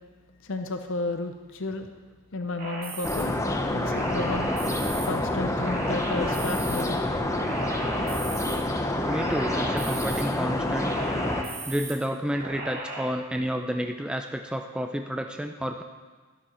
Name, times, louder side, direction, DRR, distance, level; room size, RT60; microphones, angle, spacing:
voice 1, 0.4-1.9 2.3-3.4 3.7-4.5 5.0-7.1, left 2 dB, 60° left, 7 dB, 0.6 m, -32 dB
sound 1, 2.6-3.2 3.8-5.1 5.6-6.8 7.3-8.6 9.0-10.2 10.7-11.9 12.4-13.0, right 2 dB, 45° right, 4.0 m, -37 dB
sound 2, 3.0-11.4, left 1 dB, 15° left, 0.8 m, -27 dB
voice 2, 9.0-11.0 11.7-15.8, equal, 5° right, 4 dB, 0.4 m, -30 dB
12.0 x 12.0 x 4.3 m, 1.4 s
head